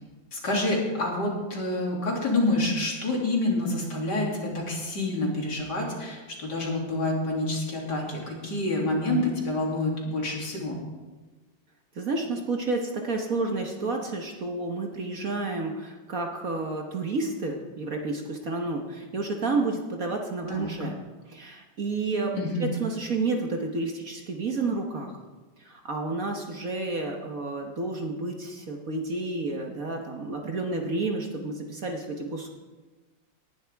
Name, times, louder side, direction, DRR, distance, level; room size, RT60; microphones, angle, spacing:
voice 1, 0.3-10.8 20.5-20.7 22.3-22.7, left 2 dB, 55° left, -2 dB, 3.4 m, -28 dB
voice 2, 11.9-21.0 21.3-22.3 22.6-25.2 25.6-32.5, right 3 dB, 50° right, 2 dB, 1.5 m, -30 dB
18.5 x 11.5 x 3.5 m, 1.2 s
omnidirectional pair, 2.1 m